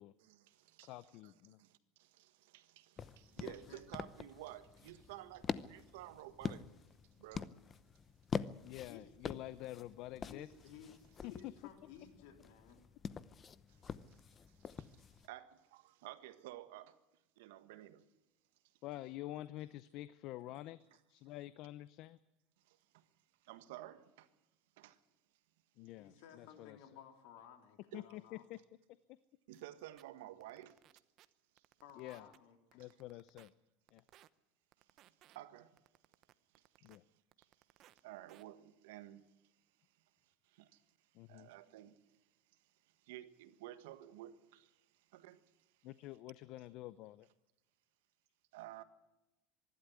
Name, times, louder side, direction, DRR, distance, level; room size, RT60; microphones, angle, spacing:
voice 1, 0.2-0.9 1.6-6.7 7.2-7.5 13.7-14.2 14.5-17.0 17.4-18.1 22.7-23.0 23.4-24.3 24.8-25.0 27.9-28.0 29.5-30.8 31.5-31.6 35.0-35.8 36.5-36.9 37.4-37.5 38.0-39.3 40.4-40.8 41.3-42.0 43.0-44.8 45.1-45.4 48.5-48.8, right 14 dB, 85° right, 1.5 m, -53 dB
voice 2, 0.8-1.6 8.6-10.5 11.2-11.5 18.8-20.8 21.1-22.2 25.8-26.9 27.9-28.6 29.1-29.2 32.0-32.3 32.7-33.5 33.9-34.0 36.8-37.0 41.1-41.5 45.8-47.3, left 16 dB, 60° left, 0.6 m, -48 dB
sound 1, 3.0-15.3, left 6 dB, 30° left, 0.8 m, -46 dB
voice 3, 3.4-3.8 8.8-9.0 10.2-12.8 26.0-28.5 31.8-32.9, left 8 dB, 75° left, 3.7 m, -57 dB
sound 2, 29.5-29.6 30.0-30.1 30.4-31.3 31.6-32.4 32.7-33.5 33.9-34.3 34.7-35.4 35.8-37.0 37.3-38.0 38.3-38.4, right 13 dB, 50° right, 0.9 m, -63 dB
24.5 x 12.0 x 9.6 m
supercardioid pair, 125°, 0 cm